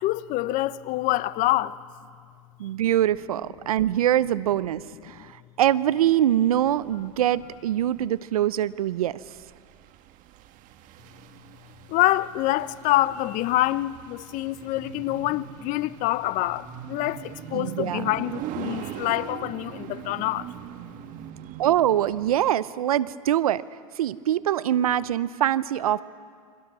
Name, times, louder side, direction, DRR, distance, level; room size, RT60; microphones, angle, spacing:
voice 1, 0.0-1.8 5.1-5.2 11.9-20.5, left 16 dB, 45° left, 0.9 m, -26 dB
voice 2, 2.6-5.2 5.6-9.2 17.5-18.0 21.6-23.6 24.0-26.0, right 11 dB, 85° right, 0.7 m, -23 dB
sound 1, 6.5-22.4, right 11 dB, 45° right, 1.5 m, -41 dB
29.5 x 24.0 x 6.2 m
hypercardioid pair, 105°, 18 cm